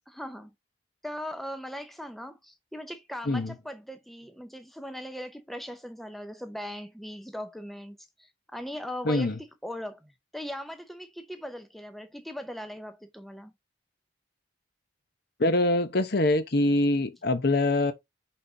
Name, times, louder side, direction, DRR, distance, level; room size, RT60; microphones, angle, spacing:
voice 1, 0.1-0.5 1.0-13.5, equal, ahead, 0.5 m, -39 dB
voice 2, 9.0-9.4 15.4-17.9, left 2 dB, 50° left, 0.9 m, -24 dB
5.8 x 4.3 x 3.8 m
head